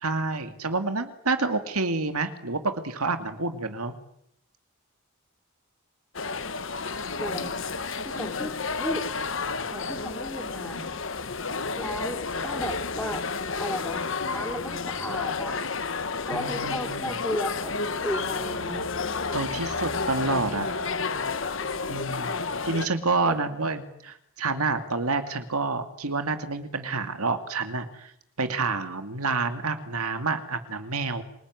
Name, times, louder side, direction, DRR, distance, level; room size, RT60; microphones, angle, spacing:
voice 1, 0.0-3.9 16.3-17.1 19.3-20.7 21.8-22.3 22.6-28.1 28.4-31.2, right 3 dB, 90° right, 8 dB, 2.4 m, -28 dB
sound 1, 6.1-22.9, left 4 dB, 60° left, 1.5 m, -31 dB
voice 2, 7.2-7.6 8.0-9.1 9.7-10.8 11.7-13.2 13.6-14.0 14.3-15.6 16.2-18.9 23.2-23.4, equal, 5° left, 2 dB, 4.6 m, -34 dB
27.0 x 19.5 x 9.7 m, 0.75 s
head